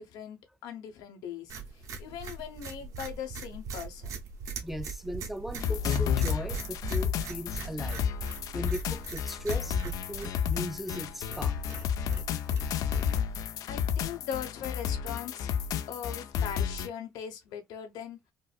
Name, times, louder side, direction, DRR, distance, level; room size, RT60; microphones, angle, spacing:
voice 1, 0.0-4.1 13.3-15.5 15.9-18.2, left 8 dB, 85° left, 1.0 m, -40 dB
sound 1, 1.5-13.5, right 5 dB, 55° right, 1.1 m, -41 dB
voice 2, 4.6-8.1 8.5-11.6, equal, 5° right, 0.3 m, -38 dB
sound 2, 5.6-16.9, left 8 dB, 65° left, 0.4 m, -31 dB
4.6 x 2.1 x 2.3 m
cardioid pair, 125°, 7 cm